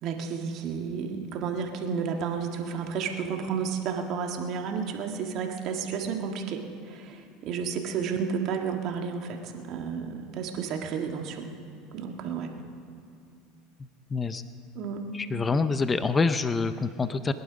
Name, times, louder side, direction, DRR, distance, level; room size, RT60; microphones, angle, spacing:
voice 1, 0.0-11.5 11.9-12.5 14.8-15.0, right 6 dB, 55° right, 3 dB, 1.8 m, -32 dB
voice 2, 14.1-14.4 15.1-17.3, left 4 dB, 20° left, 11 dB, 0.6 m, -26 dB
21.0 x 11.0 x 5.2 m, 2.4 s
supercardioid pair, 110°, 0 cm